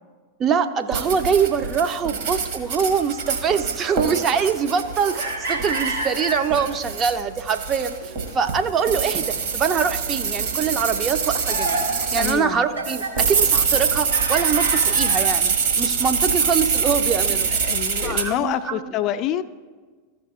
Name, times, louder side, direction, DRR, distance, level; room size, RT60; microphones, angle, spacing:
voice 1, 0.4-18.9, right 6 dB, 25° right, 8 dB, 0.5 m, -24 dB
sound 1, 0.9-12.4 12.8-18.3, right 6 dB, 55° right, 1.4 m, -24 dB
sound 2, 2.3-6.7 7.2-8.4 8.7-9.8 10.0-10.2 10.9-15.7 16.0-16.7 17.1-17.2 17.5-17.6 18.3-18.6, right 2 dB, 80° right, 1.5 m, -32 dB
voice 2, 12.2-12.7 17.6-19.4, left 11 dB, 35° left, 9 dB, 0.4 m, -26 dB
14.5 x 5.5 x 3.0 m, 1.4 s
figure-of-eight pair, 90°, 0 cm